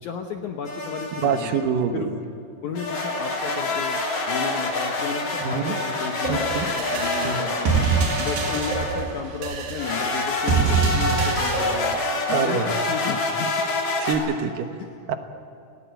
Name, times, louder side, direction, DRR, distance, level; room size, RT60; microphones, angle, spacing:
voice 1, 0.0-1.6 1.9-2.1 2.6-4.0 4.3-7.8 8.2-12.0 12.3-13.6 14.8-15.2, left 6 dB, 70° left, 4 dB, 1.8 m, -33 dB
sound 1, 0.6-1.7 2.7-9.1 9.8-14.1, left 2 dB, 55° left, 4.6 m, -27 dB
voice 2, 1.2-2.2 5.4-5.8 6.3-6.7 7.2-7.4 12.3-12.7 14.0-14.7 15.1-15.2, right 6 dB, 65° right, 7 dB, 2.5 m, -25 dB
sound 2, 6.2-11.9, right 5 dB, 90° right, 4.3 m, -25 dB
19.0 x 18.0 x 9.1 m, 2.5 s
omnidirectional pair, 4.7 m